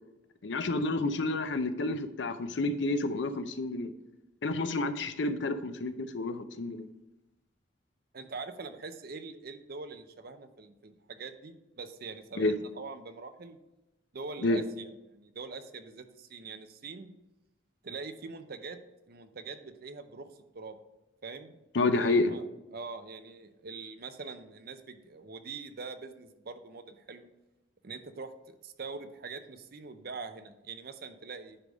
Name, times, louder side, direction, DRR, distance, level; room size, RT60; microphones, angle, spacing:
voice 1, 0.4-3.9 4.4-6.9 12.4-12.5 14.4-14.6 21.7-22.3, left 2 dB, 60° left, 10 dB, 0.5 m, -29 dB
voice 2, 8.1-13.6 14.1-17.1 17.8-18.8 19.1-20.8 21.2-21.6 22.0-22.4 22.7-27.3 27.8-31.6, right 4 dB, 50° right, 9 dB, 0.6 m, -43 dB
9.7 x 3.5 x 5.1 m, 0.96 s
head